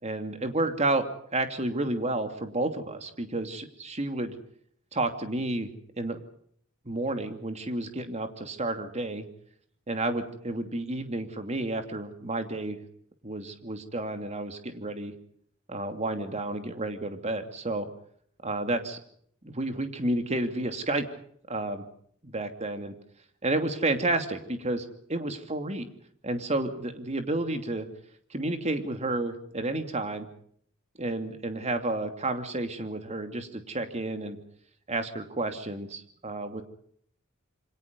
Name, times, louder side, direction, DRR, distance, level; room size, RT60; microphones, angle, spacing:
voice 1, 0.0-4.4 4.9-6.2 6.8-9.3 9.9-12.8 13.2-15.1 15.7-17.9 18.4-19.0 19.4-21.1 21.5-21.9 22.2-22.9 23.4-25.9 26.2-27.9 28.3-30.3 31.0-34.4 34.9-36.6, right 2 dB, 30° right, 7 dB, 2.8 m, -31 dB
28.0 x 25.0 x 5.4 m, 0.63 s
head